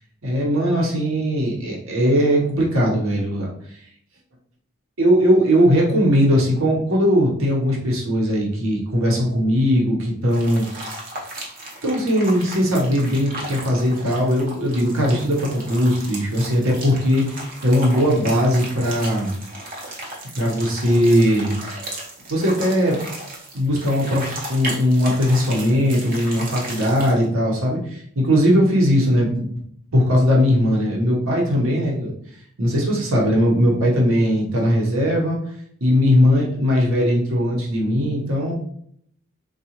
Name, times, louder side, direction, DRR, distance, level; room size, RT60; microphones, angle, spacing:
voice 1, 0.2-3.5 5.0-10.7 11.8-19.3 20.3-21.5 22.3-23.0 23.5-29.5 29.9-32.1 32.6-35.4 35.8-38.5, equal, 70° right, -2 dB, 0.9 m, -19 dB
sound 1, 10.3-27.2, right 1 dB, 40° right, 0.8 m, -35 dB
3.6 x 2.4 x 2.9 m, 0.66 s
head